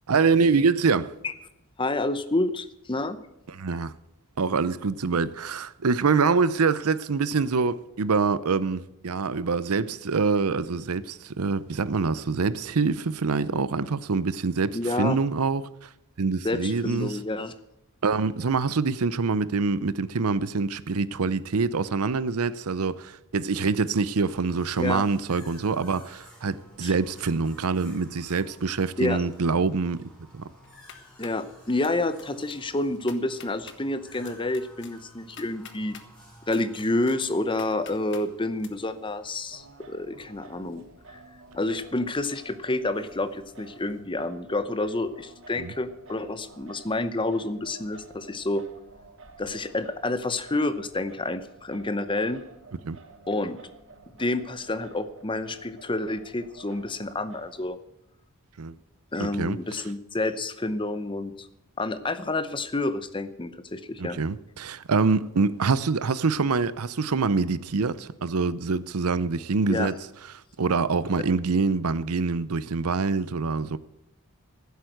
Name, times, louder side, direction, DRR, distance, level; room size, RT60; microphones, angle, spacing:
voice 1, 0.1-1.1 3.5-3.9 4.4-15.7 16.2-17.2 18.0-30.0 30.3-30.4 45.6-45.7 52.8-53.0 58.6-58.7 59.2-59.6 64.0-69.9 70.6-73.8, right 4 dB, 80° right, 0.7 m, -25 dB
voice 2, 1.8-3.2 14.7-15.2 16.4-17.5 24.8-25.0 26.8-26.9 29.0-29.2 31.2-36.0 36.5-40.8 41.1-41.2 41.5-48.6 49.4-52.4 53.3-53.6 54.2-57.8 59.1-61.5 61.8-64.2 69.7-69.9, left 2 dB, 20° left, 0.8 m, -29 dB
sound 1, 24.2-44.0, equal, 5° left, 5.3 m, -54 dB
sound 2, 30.6-31.4 31.8-32.2 32.5-32.6 32.9-33.8 34.2-36.1 36.5-38.2 38.6-38.7, left 7 dB, 55° left, 1.5 m, -47 dB
Singing, 39.5-57.6, right 3 dB, 60° right, 1.5 m, -51 dB
15.5 x 8.2 x 7.9 m
head